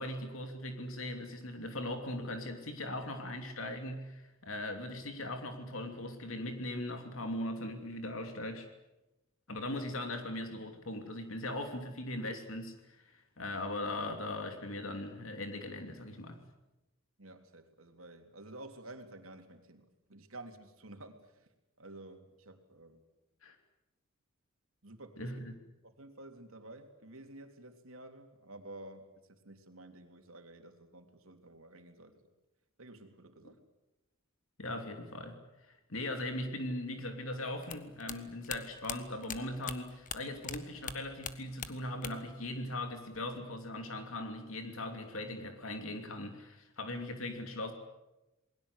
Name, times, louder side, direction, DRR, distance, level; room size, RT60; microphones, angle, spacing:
voice 1, 0.0-8.7 9.5-16.4 23.4-23.6 25.2-25.5 34.6-47.7, left 1 dB, 70° left, 5 dB, 3.0 m, -39 dB
voice 2, 17.2-21.5 21.8-23.0 24.8-25.3 25.8-32.2 32.8-33.6, right 2 dB, 70° right, 5 dB, 3.3 m, -51 dB
sound 1, 37.6-40.6 40.8-42.4 42.6-43.4, left 7 dB, 40° left, 1.5 m, -42 dB
28.5 x 21.5 x 8.3 m, 0.99 s
head